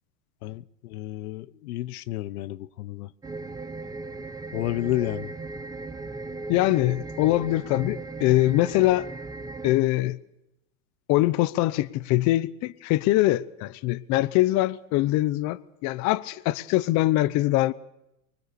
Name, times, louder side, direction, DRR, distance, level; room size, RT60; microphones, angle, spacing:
voice 1, 0.4-3.1 4.5-5.3, left 15 dB, 75° left, 1.0 m, -31 dB
sound 1, 3.2-9.8, right 3 dB, 10° right, 0.9 m, -37 dB
voice 2, 6.5-9.1 9.6-10.2 11.1-17.7, left 17 dB, 40° left, 0.8 m, -23 dB
24.5 x 20.5 x 6.9 m
supercardioid pair, 135°, 44 cm